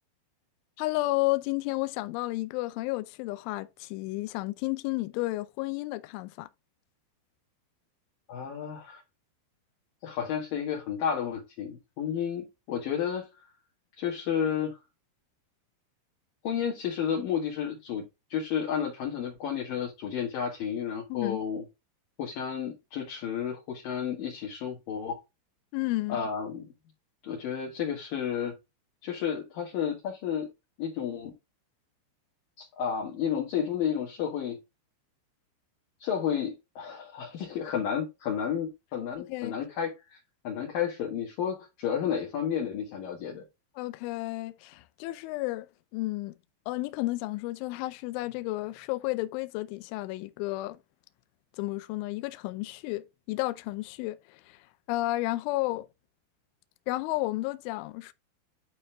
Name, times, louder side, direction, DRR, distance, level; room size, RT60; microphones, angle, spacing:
voice 1, 0.8-6.5 21.1-21.4 25.7-26.3 39.3-39.5 43.8-46.3 46.7-50.8 51.6-54.6 54.9-55.9 56.9-58.1, left 19 dB, 85° left, 3.0 m, -32 dB
voice 2, 8.3-9.0 10.0-13.3 14.0-14.8 16.4-18.0 18.3-21.6 22.2-25.2 26.1-26.7 27.2-28.5 29.0-30.5 30.8-31.3 32.6-34.6 36.0-40.2 40.4-43.4, left 8 dB, 60° left, 2.8 m, -31 dB
11.5 x 4.4 x 2.3 m
omnidirectional pair, 5.6 m